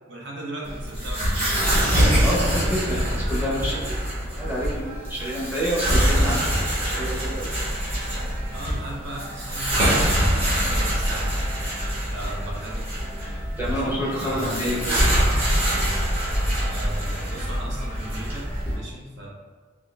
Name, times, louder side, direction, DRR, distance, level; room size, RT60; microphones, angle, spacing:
voice 1, 0.1-1.9 2.8-3.0 8.5-11.6 12.0-12.9 13.7-14.0 14.2-14.6 16.6-19.3, right 1 dB, 60° right, -3 dB, 0.8 m, -37 dB
sound 1, 0.6-18.8, equal, 30° right, 1.1 m, -24 dB
voice 2, 2.2-3.9 4.3-7.7 13.6-15.0, equal, 10° right, -7 dB, 0.8 m, -28 dB
3.5 x 2.4 x 3.2 m, 1.5 s
head